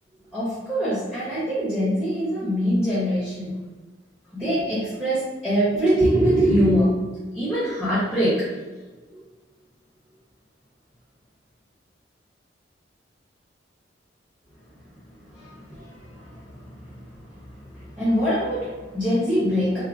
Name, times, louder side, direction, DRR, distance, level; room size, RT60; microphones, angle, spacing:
voice 1, 0.3-3.6 4.3-7.0 7.3-8.6 15.3-19.8, equal, 10° left, -11 dB, 1.1 m, -24 dB
3.6 x 2.1 x 3.7 m, 1.2 s
head